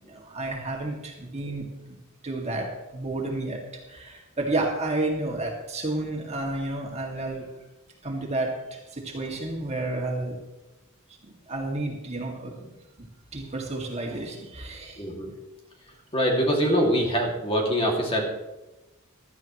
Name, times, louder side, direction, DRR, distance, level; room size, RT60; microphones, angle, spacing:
voice 1, 0.0-1.9 2.2-3.6 3.9-7.5 8.0-10.4 11.2-13.1 13.3-15.0, right 2 dB, 30° right, 0 dB, 2.3 m, -31 dB
voice 2, 15.0-15.3 16.1-18.3, equal, 25° left, 0 dB, 2.4 m, -24 dB
16.5 x 13.0 x 3.1 m, 1.0 s
head